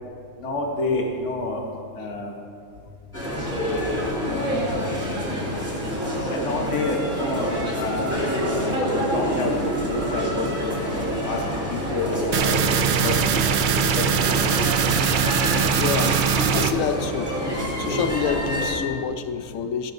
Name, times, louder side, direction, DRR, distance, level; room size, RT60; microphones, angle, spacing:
voice 1, 0.4-1.6 1.9-2.3 4.3-4.6 6.3-8.1 8.4-13.4 13.9-14.0 14.3-14.4, left 2 dB, 65° left, 0 dB, 1.4 m, -29 dB
sound 1, 3.1-18.7, equal, 10° right, 3.2 m, -27 dB
sound 2, 12.3-16.7, right 7 dB, 75° right, 0.4 m, -22 dB
voice 2, 13.0-13.4 15.7-16.2 16.5-17.4 17.8-19.9, left 6 dB, 80° left, 8 dB, 1.1 m, -27 dB
15.5 x 11.5 x 2.6 m, 2.3 s
omnidirectional pair, 1.4 m